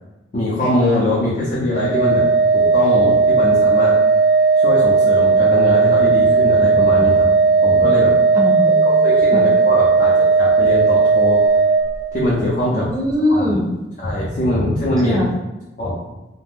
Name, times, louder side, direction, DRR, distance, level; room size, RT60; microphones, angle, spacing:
voice 1, 0.3-3.9 4.6-7.3 7.6-8.1 9.0-11.4 12.1-12.9 13.3-13.5 14.0-15.2 15.8-16.0, left 1 dB, 45° left, -6 dB, 0.5 m, -22 dB
Organ, 1.7-12.4, right 4 dB, 75° left, 0.8 m, -15 dB
voice 2, 8.3-9.4 12.7-13.7 15.0-15.3, left 1 dB, 20° right, -3 dB, 0.5 m, -21 dB
2.4 x 2.1 x 3.4 m, 1.0 s
head